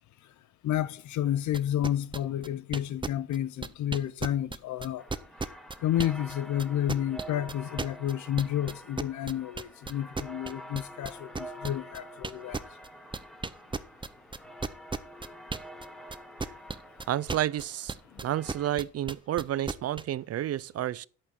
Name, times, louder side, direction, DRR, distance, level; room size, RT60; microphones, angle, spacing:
voice 1, 0.6-5.0 5.8-12.6 18.1-18.2, left 11 dB, 70° left, 0.7 m, -30 dB
sound 1, 1.5-6.3 6.6-20.0, right 3 dB, 15° right, 0.7 m, -35 dB
sound 2, 5.0-18.7, equal, ahead, 1.3 m, -47 dB
voice 2, 17.1-18.0 18.2-21.1, right 12 dB, 55° right, 0.5 m, -30 dB
10.5 x 8.6 x 4.4 m
cardioid pair, 90°, 30 cm